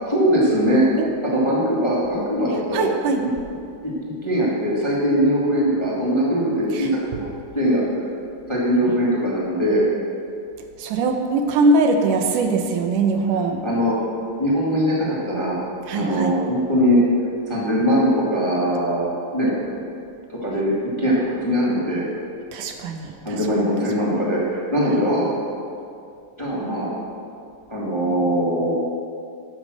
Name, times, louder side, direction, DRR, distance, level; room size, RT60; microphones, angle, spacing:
voice 1, 0.1-0.8 1.2-2.9 3.2-3.3 3.8-7.8 8.5-9.8 13.6-14.0 14.4-15.6 15.9-17.0 17.5-19.1 19.3-19.5 20.3-22.0 23.2-25.3 26.4-26.9 27.7-28.7, equal, 10° left, -6 dB, 1.7 m, -21 dB
voice 2, 2.7-3.2 6.7-7.2 10.8-13.6 15.9-16.3 22.5-23.7 24.0-24.1, right 3 dB, 80° right, 4 dB, 2.4 m, -22 dB
12.0 x 8.7 x 6.5 m, 2.5 s
omnidirectional pair, 3.7 m